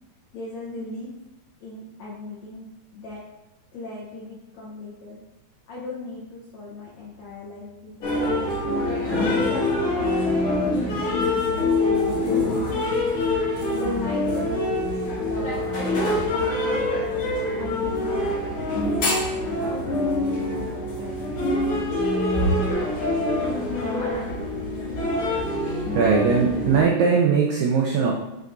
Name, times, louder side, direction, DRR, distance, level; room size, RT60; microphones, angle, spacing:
voice 1, 0.3-1.1 1.6-3.3 3.7-5.2 5.7-8.7 9.2-13.1 13.7-17.2 17.6-18.3 18.5-21.9, left 2 dB, 75° left, -6 dB, 1.6 m, -38 dB
sound 1, 8.0-26.8, left 2 dB, 45° left, 2.2 m, -25 dB
voice 2, 25.9-28.1, right 5 dB, 80° right, 0 dB, 2.0 m, -20 dB
6.4 x 5.1 x 4.0 m, 0.96 s
omnidirectional pair, 4.7 m